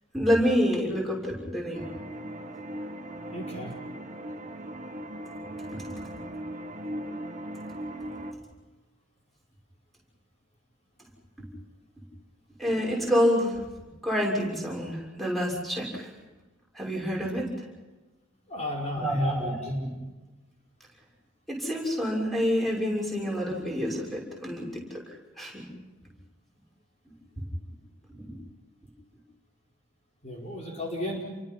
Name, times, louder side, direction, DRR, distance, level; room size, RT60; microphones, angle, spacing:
voice 1, 0.1-1.8 5.7-6.1 12.6-16.1 16.7-17.5 19.0-19.9 21.5-25.0 25.4-25.6 28.1-28.3, equal, ahead, -4 dB, 6.3 m, -28 dB
sound 1, 1.7-8.3, right 1 dB, 35° right, 2.0 m, -38 dB
voice 2, 3.3-3.7 18.5-19.6 30.2-31.2, left 1 dB, 35° left, -2 dB, 4.8 m, -34 dB
30.0 x 24.0 x 5.7 m, 1.2 s
head